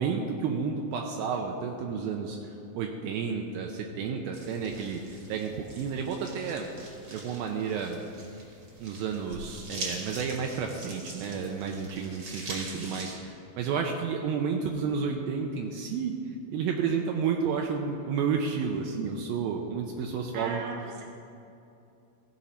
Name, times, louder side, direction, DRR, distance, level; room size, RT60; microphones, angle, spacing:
voice 1, 0.0-2.4 2.7-6.7 7.1-8.0 8.8-16.1 16.5-20.6, right 6 dB, 80° right, 2 dB, 2.4 m, -31 dB
sound 1, 4.3-13.2, right 2 dB, 40° right, 2.3 m, -43 dB
voice 2, 20.3-21.0, right 3 dB, 60° right, 0 dB, 2.3 m, -38 dB
16.0 x 5.7 x 5.0 m, 2.6 s
omnidirectional pair, 4.3 m